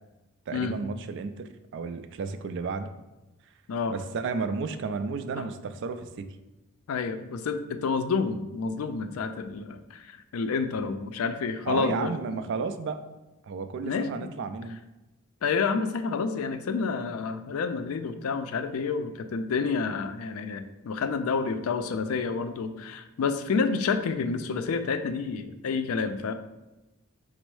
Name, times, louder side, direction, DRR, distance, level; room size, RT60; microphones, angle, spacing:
voice 1, 0.5-2.9 3.9-6.4 11.7-13.0 13.4-14.8, right 4 dB, 60° right, 9 dB, 0.3 m, -33 dB
voice 2, 6.9-12.4 13.8-14.3 15.4-26.3, left 5 dB, 80° left, 9 dB, 0.4 m, -29 dB
5.2 x 2.0 x 4.6 m, 1.0 s
head